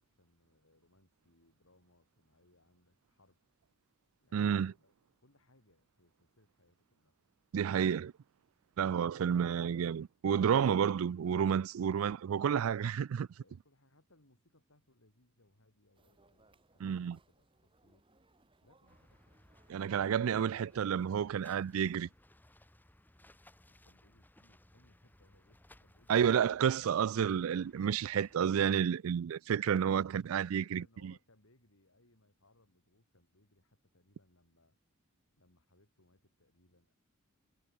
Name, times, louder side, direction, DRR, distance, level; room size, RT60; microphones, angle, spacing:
voice 1, 0.0-3.4 4.2-4.9 5.2-7.1 13.4-18.0 18.6-19.4 23.6-26.9 30.6-34.8 35.4-36.9, left 1 dB, 80° left, 5.7 m, -69 dB
voice 2, 4.3-4.7 7.5-8.1 8.8-13.3 16.8-17.2 19.7-22.1 26.1-31.1, right 8 dB, 85° right, 0.4 m, -30 dB
sound 1, 15.9-21.9, right 2 dB, 25° right, 3.0 m, -69 dB
sound 2, 18.9-28.4, left 1 dB, 10° left, 1.5 m, -63 dB
head